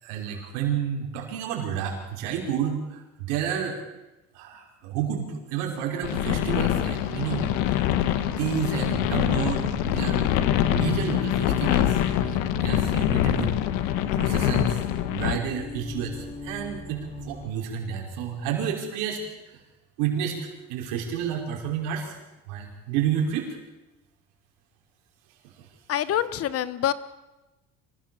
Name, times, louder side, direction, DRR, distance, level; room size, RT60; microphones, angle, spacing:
voice 1, 0.0-3.8 4.3-7.9 8.4-10.3 10.7-13.5 14.1-14.8 15.1-19.2 20.0-20.4 20.7-22.2 22.5-23.6, right 8 dB, 90° right, 1 dB, 5.4 m, -30 dB
sound 1, 6.0-15.4, left 11 dB, 85° left, 1.7 m, -24 dB
sound 2, 8.6-17.5, left 1 dB, 25° left, 5.5 m, -41 dB
voice 2, 25.9-26.9, left 11 dB, 50° left, 16 dB, 1.2 m, -25 dB
25.5 x 16.5 x 7.1 m, 1.0 s
cardioid pair, 105°, 30 cm